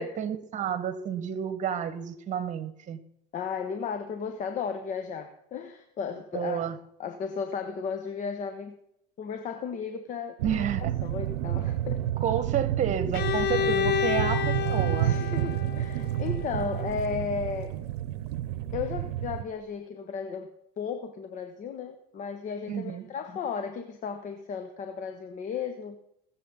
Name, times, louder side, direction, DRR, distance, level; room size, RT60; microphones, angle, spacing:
voice 1, 0.0-3.0 6.3-6.8 10.4-10.9 12.2-15.2 22.7-23.1, right 8 dB, 40° right, 12 dB, 1.7 m, -30 dB
voice 2, 3.3-6.6 7.0-8.8 9.2-12.0 15.0-17.8 18.7-20.5 20.8-26.0, left 6 dB, 40° left, 7 dB, 1.2 m, -34 dB
sound 1, 10.4-19.4, right 12 dB, 90° right, 0.7 m, -30 dB
Bowed string instrument, 13.1-17.0, left 10 dB, 65° left, 1.0 m, -30 dB
21.0 x 7.6 x 4.0 m, 0.77 s
supercardioid pair, 105°, 19 cm